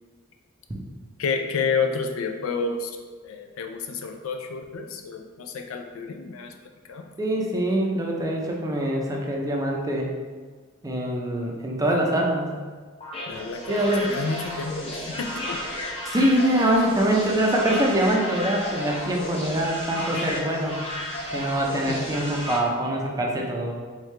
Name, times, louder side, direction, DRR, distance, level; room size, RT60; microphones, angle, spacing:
voice 1, 1.2-3.0 3.2-6.5 6.9-7.0 13.3-15.6 21.9-22.0, left 5 dB, 75° left, 4 dB, 0.4 m, -30 dB
voice 2, 7.2-10.1 10.8-12.6 13.7-14.1 16.0-20.8 21.3-23.8, right 1 dB, 15° right, -1 dB, 0.5 m, -24 dB
sound 1, 13.0-22.6, left 1 dB, 30° left, 0.8 m, -33 dB
3.6 x 3.1 x 3.2 m, 1.5 s
head